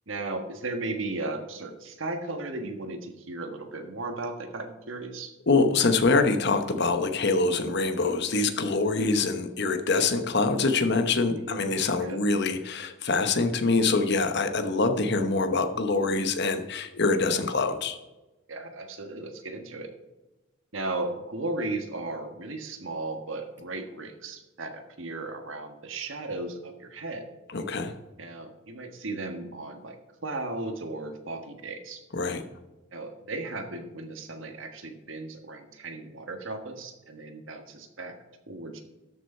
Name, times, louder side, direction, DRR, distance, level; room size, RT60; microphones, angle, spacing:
voice 1, 0.1-5.3 11.3-11.6 12.0-12.2 18.5-19.9 20.7-27.3 28.2-30.0 30.2-32.0 32.9-38.1 38.5-38.8, right 2 dB, 75° right, 5 dB, 1.5 m, -36 dB
voice 2, 5.5-18.0 27.5-28.0 32.1-32.4, left 3 dB, 55° left, 8 dB, 1.0 m, -25 dB
13.0 x 6.4 x 4.4 m, 1.1 s
head